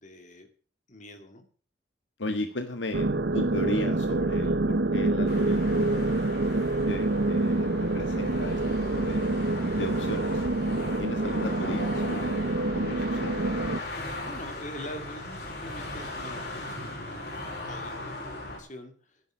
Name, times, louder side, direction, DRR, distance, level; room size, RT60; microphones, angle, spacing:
voice 1, 0.0-0.5 0.9-1.5 13.8-19.2, left 1 dB, 40° left, 6 dB, 2.2 m, -44 dB
voice 2, 2.2-6.2 6.9-9.3 9.7-10.4 11.0-12.5 12.7-13.4, left 1 dB, 90° left, 6 dB, 1.6 m, -36 dB
sound 1, 2.9-13.8, right 2 dB, 70° right, 0.9 m, -27 dB
sound 2, 5.3-18.6, left 2 dB, 55° left, 5.5 m, -38 dB
11.5 x 11.0 x 6.2 m, 0.41 s
head